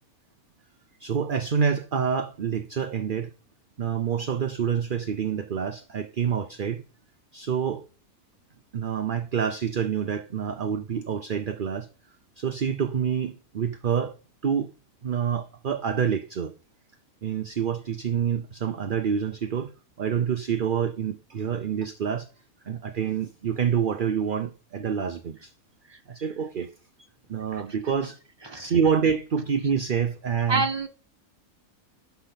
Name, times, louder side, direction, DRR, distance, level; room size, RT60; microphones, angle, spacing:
voice 1, 1.0-3.3 3.8-6.8 7.3-7.8 8.7-11.9 12.4-14.1 14.4-14.7 15.0-16.5 17.2-19.7 20.0-22.3 22.7-25.5 26.1-26.7 27.3-28.2 28.5-30.7, right 7 dB, 45° right, 0.8 m, -27 dB
voice 2, 30.5-30.9, right 3 dB, 20° right, 1.3 m, -25 dB
12.0 x 7.0 x 5.7 m
omnidirectional pair, 1.5 m